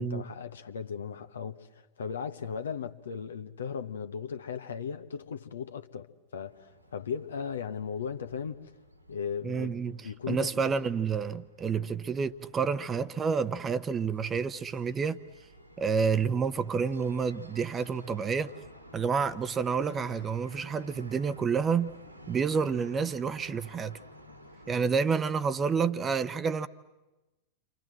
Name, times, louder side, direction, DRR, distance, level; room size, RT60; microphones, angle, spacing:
voice 1, 0.0-8.7 9.1-10.7, left 6 dB, 65° left, 1.3 m, -37 dB
sound 1, 6.4-24.9, equal, 85° right, 2.7 m, -53 dB
voice 2, 9.4-10.0 10.3-15.2 15.8-18.5 18.9-21.9 22.3-24.0 24.7-26.7, right 5 dB, 20° right, 0.9 m, -29 dB
30.0 x 25.5 x 7.6 m
figure-of-eight pair, 90°, 0 cm